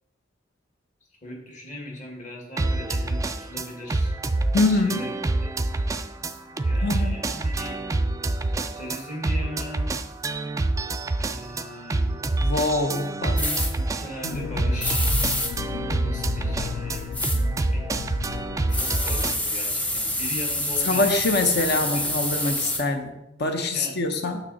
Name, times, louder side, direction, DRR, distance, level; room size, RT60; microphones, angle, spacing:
voice 1, 1.2-4.1 4.7-5.1 5.4-5.6 6.6-7.8 8.5-9.9 11.2-12.2 13.3-15.1 16.0-17.1 17.7-17.9 18.7-21.1 21.7-22.6 23.7-24.0, left 1 dB, 40° left, 0 dB, 1.9 m, -39 dB
sound 1, 2.6-19.3, right 2 dB, 15° right, 0.3 m, -27 dB
voice 2, 4.5-5.0 6.8-7.2 12.4-13.4 14.2-14.5 20.8-24.4, left 2 dB, 60° left, 5 dB, 0.8 m, -24 dB
sound 2, 13.4-13.7 14.8-15.5 17.1-17.4 18.7-22.8, left 1 dB, 10° left, 0.8 m, -27 dB
sound 3, 14.3-19.4, left 6 dB, 85° left, 0.3 m, -34 dB
6.4 x 6.1 x 4.1 m, 0.92 s
head